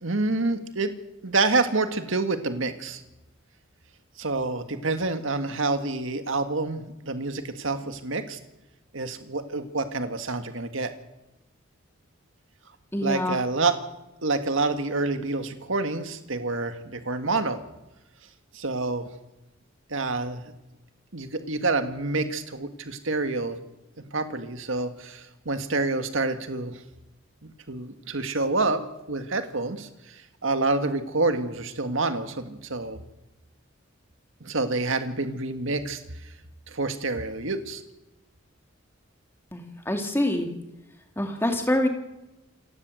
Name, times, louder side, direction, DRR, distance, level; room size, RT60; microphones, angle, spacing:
voice 1, 0.0-0.9 1.2-3.0 4.2-8.4 8.9-10.9 13.0-13.8 14.2-17.6 18.5-19.0 19.9-20.4 21.1-23.6 24.1-26.8 27.4-28.8 29.1-33.0 34.4-36.0 36.7-37.8, right 3 dB, 70° right, 8 dB, 1.9 m, -27 dB
voice 2, 12.9-13.4 39.5-40.5 41.2-41.9, left 1 dB, 10° left, 4 dB, 2.5 m, -25 dB
28.0 x 13.0 x 7.8 m, 0.98 s
head